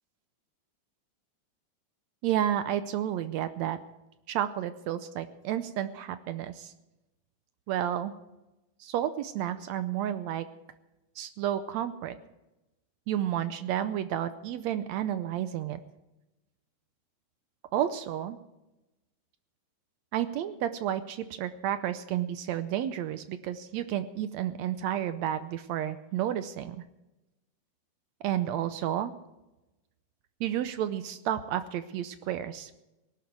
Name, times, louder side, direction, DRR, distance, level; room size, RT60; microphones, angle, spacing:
voice 1, 2.2-3.8 4.3-6.7 7.7-8.1 8.8-10.5 11.2-12.2 13.1-15.8 17.7-18.4 20.1-26.8 28.2-29.1 30.4-32.7, right 11 dB, 80° right, 12 dB, 1.7 m, -31 dB
18.5 x 11.5 x 4.6 m, 0.98 s
omnidirectional pair, 3.6 m